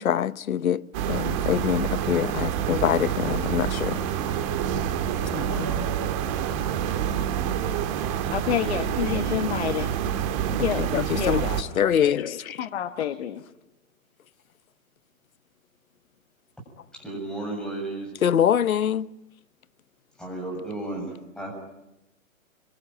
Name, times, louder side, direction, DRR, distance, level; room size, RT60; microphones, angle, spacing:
voice 1, 0.0-4.0 5.3-5.9 10.6-12.7 18.2-19.1, left 9 dB, 85° left, 1.1 m, -25 dB
sound 1, 0.9-11.6, right 9 dB, 25° right, 1.8 m, -27 dB
voice 2, 8.3-9.9 10.5-11.6 12.0-13.4, left 10 dB, 50° left, 1.5 m, -29 dB
voice 3, 16.9-18.1 20.2-21.6, right 2 dB, ahead, 7.0 m, -33 dB
24.5 x 23.5 x 9.0 m
hypercardioid pair, 160°, 41 cm